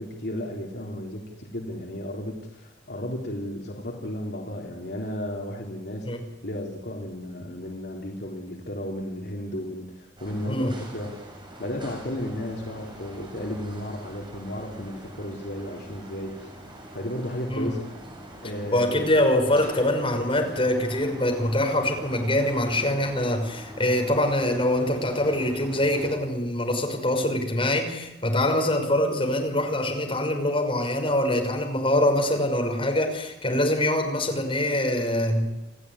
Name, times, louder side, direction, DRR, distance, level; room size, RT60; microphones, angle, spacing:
voice 1, 0.0-6.1 6.4-11.3 11.6-16.5 16.9-17.8 18.4-19.0, left 1 dB, 60° left, -1 dB, 3.6 m, -34 dB
sound 1, 10.2-26.2, right 1 dB, 25° right, 7.6 m, -44 dB
voice 2, 10.5-10.9 17.5-17.8 18.7-35.5, left 1 dB, 30° left, 4 dB, 5.8 m, -24 dB
29.0 x 16.0 x 9.9 m, 1.0 s
head